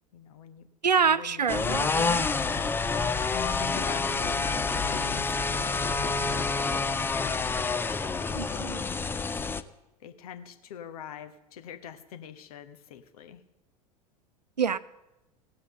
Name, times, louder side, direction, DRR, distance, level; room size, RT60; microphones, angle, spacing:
voice 1, 0.1-0.7 1.0-1.5 3.3-7.4 8.5-9.0 10.0-13.4, left 8 dB, 60° left, 8 dB, 1.1 m, -44 dB
voice 2, 0.8-2.3 3.8-3.9 8.3-8.8 14.6-14.8, right 6 dB, 85° right, 17 dB, 0.4 m, -27 dB
sound 1, 1.5-9.6, left 4 dB, 10° left, 0.4 m, -28 dB
17.0 x 5.7 x 6.7 m, 0.95 s
figure-of-eight pair, 80°, 21 cm